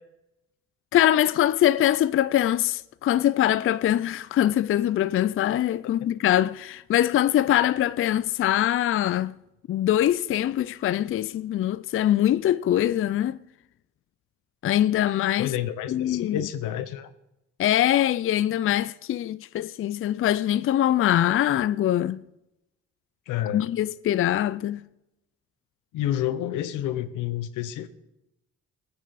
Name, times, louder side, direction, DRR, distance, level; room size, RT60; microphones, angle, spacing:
voice 1, 0.9-9.3 9.7-13.4 14.6-15.5 15.9-16.5 17.6-22.2 23.5-24.9, left 12 dB, 45° left, 0.4 m, -23 dB
voice 2, 15.4-17.1 23.3-23.7 25.9-27.9, left 11 dB, 90° left, 1.0 m, -29 dB
20.5 x 9.5 x 4.1 m
cardioid pair, 90°, 30 cm